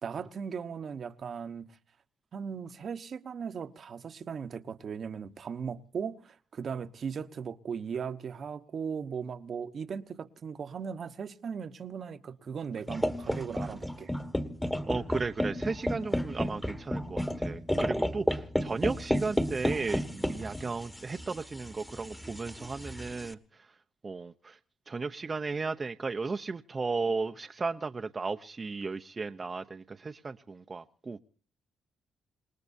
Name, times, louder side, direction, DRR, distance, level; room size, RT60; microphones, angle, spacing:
voice 1, 0.0-1.7 2.3-14.1, right 6 dB, 50° right, 1.1 m, -38 dB
sound 1, 12.9-23.3, equal, 5° left, 1.4 m, -32 dB
voice 2, 14.9-23.4 24.0-24.6 24.9-31.2, right 4 dB, 30° right, 0.7 m, -35 dB
27.5 x 19.0 x 2.7 m
cardioid pair, 90°, 0 cm